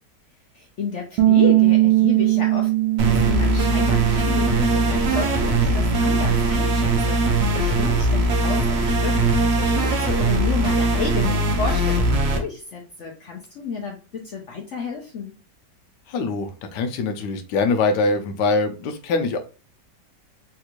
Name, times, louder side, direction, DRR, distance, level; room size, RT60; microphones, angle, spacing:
voice 1, 0.5-2.7 3.0-15.3, left 5 dB, 65° left, 1 dB, 0.7 m, -31 dB
Bass guitar, 1.2-7.4, right 16 dB, 90° right, 1.3 m, -22 dB
sound 1, 3.0-12.4, right 2 dB, 55° right, 0.7 m, -20 dB
voice 2, 16.1-19.4, left 3 dB, 80° left, 7 dB, 1.2 m, -23 dB
3.5 x 2.9 x 2.4 m, 0.34 s
omnidirectional pair, 1.8 m